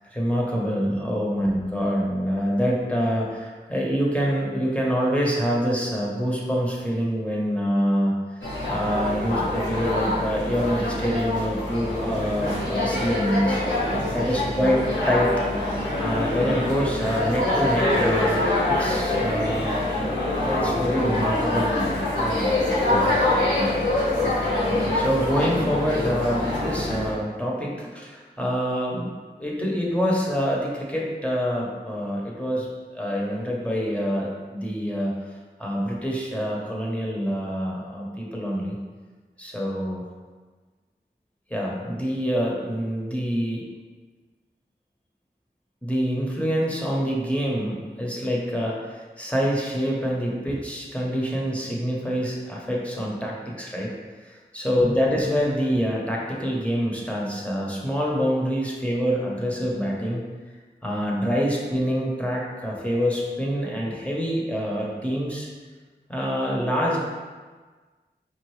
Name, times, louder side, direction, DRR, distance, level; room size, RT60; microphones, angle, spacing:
voice 1, 0.1-13.6 14.1-14.8 15.1-19.8 20.4-21.8 22.2-22.5 24.9-29.1 29.4-32.7 32.9-35.1 35.6-38.8 39.4-40.0 41.5-43.6 45.8-53.9 54.2-60.2 60.8-65.5 66.1-67.0, equal, 5° left, -4 dB, 0.8 m, -26 dB
sound 1, 8.4-27.1, left 1 dB, 80° left, 1.2 m, -25 dB
4.4 x 2.5 x 3.1 m, 1.4 s
wide cardioid pair, 40°, 19 cm